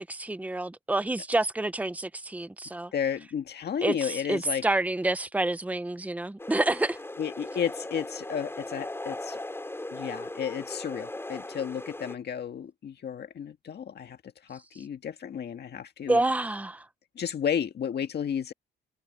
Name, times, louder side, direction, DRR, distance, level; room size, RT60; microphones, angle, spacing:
voice 1, 0.0-2.9 3.8-7.0 16.1-16.8, right 2 dB, 5° right, 0.9 m, -28 dB
voice 2, 2.9-4.6 7.2-9.4 9.9-14.2 14.5-16.2 17.2-18.5, left 8 dB, 55° left, 1.8 m, -32 dB
sound 1, 6.4-12.2, left 1 dB, 10° left, 7.7 m, -38 dB
cardioid pair, 90°, 20 cm